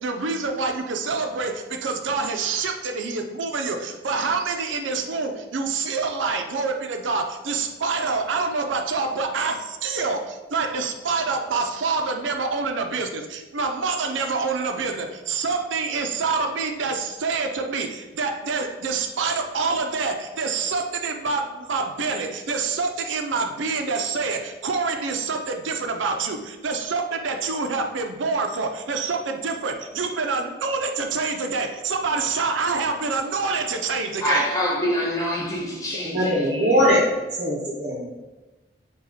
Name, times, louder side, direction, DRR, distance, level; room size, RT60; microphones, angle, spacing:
voice 1, 0.0-34.5, right 4 dB, 85° right, 0.5 m, -26 dB
voice 2, 34.2-37.0, equal, 20° left, 0.9 m, -26 dB
voice 3, 36.0-37.0 37.4-38.1, equal, 35° right, 0.7 m, -21 dB
4.9 x 2.3 x 4.1 m
head